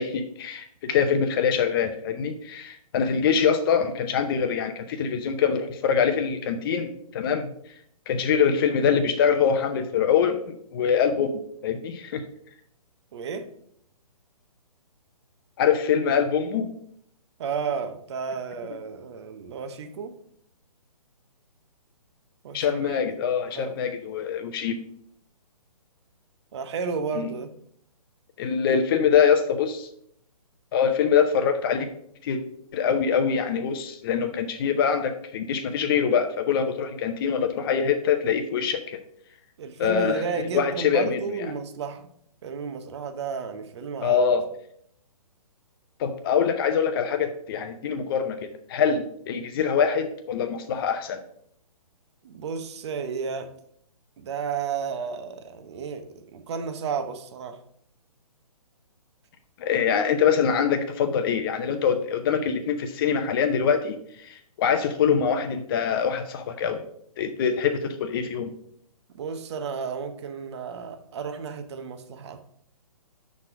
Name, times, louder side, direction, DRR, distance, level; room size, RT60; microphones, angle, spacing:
voice 1, 0.0-7.5 8.1-12.2 15.6-16.7 22.5-24.8 27.1-27.3 28.4-29.9 30.7-31.9 32.2-32.4 32.7-39.0 39.8-40.2 40.5-41.2 44.0-44.4 46.0-48.4 48.7-51.2 59.6-66.8 67.2-68.5, left 7 dB, 40° left, 0.7 m, -24 dB
voice 2, 13.1-13.5 17.4-20.2 22.4-23.2 23.5-23.8 26.5-27.5 39.6-42.1 42.4-44.2 52.2-53.5 54.2-57.6 69.1-72.4, right 6 dB, 45° right, 0.8 m, -32 dB
6.2 x 4.3 x 5.7 m
hypercardioid pair, 140°, 19 cm